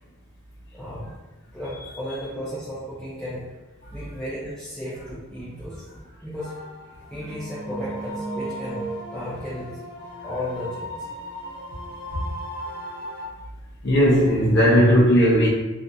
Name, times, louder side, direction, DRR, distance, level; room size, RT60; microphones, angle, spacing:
voice 1, 0.7-1.1 1.5-3.4 3.9-6.6 7.1-8.9 9.1-9.8 10.2-11.1, equal, 5° left, -12 dB, 0.6 m, -34 dB
voice 2, 3.8-4.1 7.0-7.2 12.1-12.2 13.8-15.5, equal, 55° left, -3 dB, 0.6 m, -18 dB
sound 1, 6.4-13.2, right 1 dB, 25° left, 0.9 m, -36 dB
2.6 x 2.5 x 2.3 m, 1.1 s
head